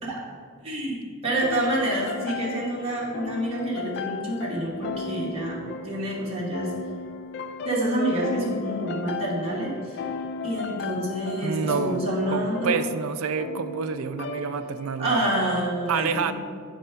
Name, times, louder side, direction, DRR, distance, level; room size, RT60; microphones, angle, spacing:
voice 1, 0.6-6.7 7.6-10.0 10.4-12.8 15.0-16.3, right 1 dB, 30° right, -5 dB, 1.3 m, -28 dB
sound 1, 1.4-15.1, left 4 dB, 50° left, 0.3 m, -35 dB
voice 2, 11.4-12.0 12.3-15.3 15.9-16.3, right 6 dB, 75° right, 10 dB, 0.4 m, -28 dB
8.3 x 3.3 x 5.6 m, 2.1 s
head